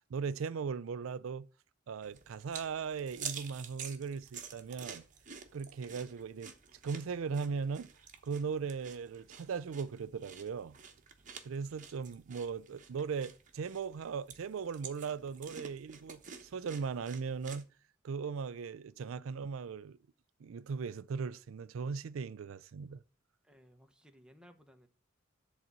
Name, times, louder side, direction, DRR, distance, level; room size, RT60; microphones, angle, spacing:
voice 1, 0.1-1.5 1.9-5.0 5.5-6.5 6.8-7.9 8.2-10.8 11.4-17.7 18.0-20.0 20.4-23.0, right 5 dB, 85° right, 0.4 m, -38 dB
sound 1, 2.0-17.6, right 7 dB, 40° right, 1.1 m, -49 dB
voice 2, 23.4-24.9, equal, 5° right, 1.0 m, -60 dB
10.5 x 4.1 x 7.4 m
head